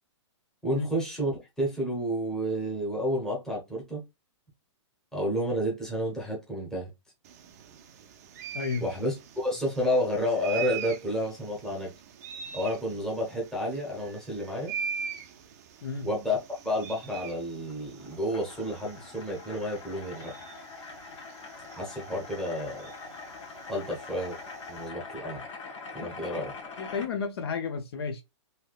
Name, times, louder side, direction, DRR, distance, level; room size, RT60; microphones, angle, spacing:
voice 1, 0.6-4.0 5.1-6.9 8.8-11.9 12.5-14.7 16.0-20.3 21.7-22.9 23.7-24.4 24.7-25.4 25.9-26.5, equal, 5° left, 0.9 m, -30 dB
sound 1, 7.2-24.9, right 7 dB, 30° right, 0.4 m, -43 dB
voice 2, 8.5-8.9 15.8-16.1 26.8-28.2, left 5 dB, 55° left, 0.6 m, -32 dB
sound 2, 17.6-27.1, left 4 dB, 75° left, 1.3 m, -44 dB
3.3 x 2.8 x 2.3 m
hypercardioid pair, 165°, 16 cm